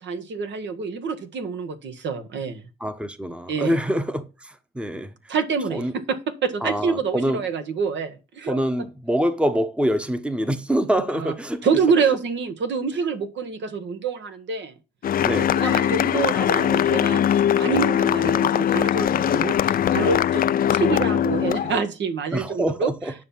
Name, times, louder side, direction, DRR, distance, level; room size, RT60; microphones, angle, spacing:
voice 1, 0.0-2.6 3.5-3.8 5.3-8.6 11.2-11.3 11.6-14.7 15.6-22.9, right 5 dB, 65° right, 1.4 m, -26 dB
voice 2, 2.8-5.2 5.7-6.0 6.6-7.4 8.4-11.7 15.2-15.5 22.3-23.1, equal, 5° right, 1.0 m, -25 dB
sound 1, 15.0-21.8, left 10 dB, 45° left, 0.4 m, -21 dB
9.5 x 5.9 x 5.6 m
cardioid pair, 90°, 20 cm